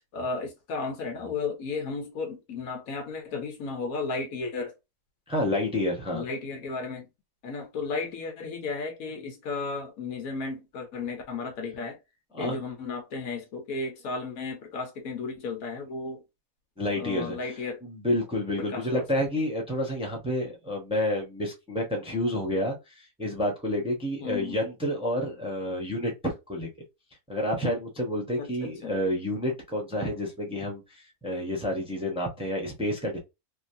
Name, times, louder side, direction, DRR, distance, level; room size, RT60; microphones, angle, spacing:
voice 1, 0.1-4.7 6.1-7.1 7.4-12.0 12.4-16.2 17.0-17.8 18.7-19.0 24.2-24.6 28.4-28.9, left 4 dB, 85° left, 1.3 m, -34 dB
voice 2, 5.3-6.2 12.3-12.6 16.8-26.7 27.3-33.2, left 1 dB, 5° right, 0.8 m, -29 dB
3.3 x 2.6 x 2.6 m
omnidirectional pair, 1.4 m